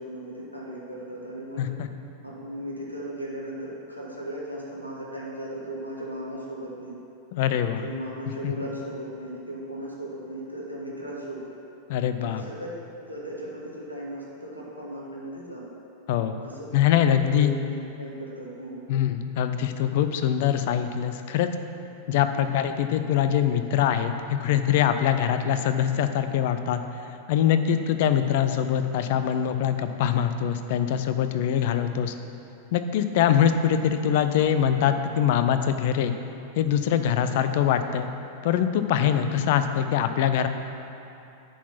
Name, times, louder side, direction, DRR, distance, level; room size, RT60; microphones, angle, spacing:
voice 1, 0.0-1.8 2.2-6.9 7.8-11.5 12.2-12.7 13.0-15.6 16.4-18.8 22.1-22.4 28.2-28.3 33.1-33.4 37.3-37.4 39.2-39.5, right 1 dB, 90° left, -4 dB, 1.5 m, -37 dB
voice 2, 7.3-7.9 8.4-8.5 11.9-12.4 16.1-16.4 16.7-17.5 18.9-21.5 22.1-26.8 27.3-32.1 32.7-36.1 36.6-38.1 38.4-40.5, left 9 dB, 50° left, 9 dB, 0.5 m, -23 dB
9.9 x 4.0 x 5.9 m, 2.9 s
figure-of-eight pair, 90°, 0 cm